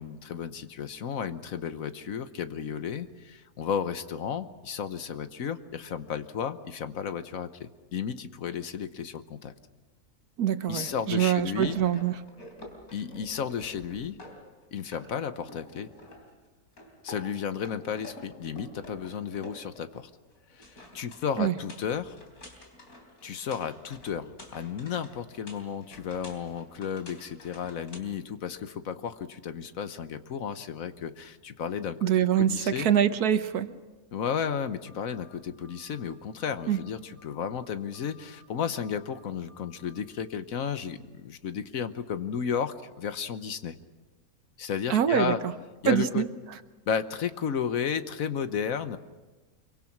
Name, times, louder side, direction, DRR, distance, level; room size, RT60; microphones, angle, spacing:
voice 1, 0.0-9.5 10.7-11.8 12.9-14.2 14.7-15.9 17.0-20.1 20.6-22.2 23.2-32.9 34.1-43.8 44.6-45.4 45.8-46.2 46.9-49.0, left 7 dB, 65° left, 11 dB, 1.4 m, -33 dB
voice 2, 10.4-12.2 21.4-21.6 32.0-33.7 36.7-36.8 44.9-45.5 45.9-46.3, right 10 dB, 90° right, 11 dB, 1.5 m, -24 dB
sound 1, 10.6-14.6 14.9-16.4 16.8-20.1 20.3-28.0, left 1 dB, 85° left, 4.1 m, -48 dB
sound 2, 34.9-35.3 35.6-36.1 36.4-36.9 37.2-37.6 37.9-38.4 38.7-39.2 39.5-40.0, left 7 dB, 35° right, 2.0 m, -58 dB
25.0 x 23.5 x 6.0 m, 1.2 s
omnidirectional pair, 1.6 m